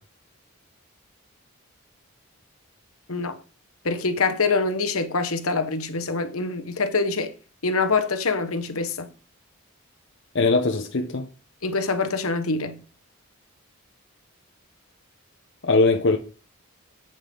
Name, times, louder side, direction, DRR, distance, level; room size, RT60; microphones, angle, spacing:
voice 1, 3.8-7.3 7.6-9.1 11.6-12.8, left 4 dB, 75° left, 1.2 m, -25 dB
voice 2, 10.3-11.3 15.6-16.2, left 3 dB, 55° left, 0.8 m, -20 dB
8.4 x 7.9 x 3.9 m
head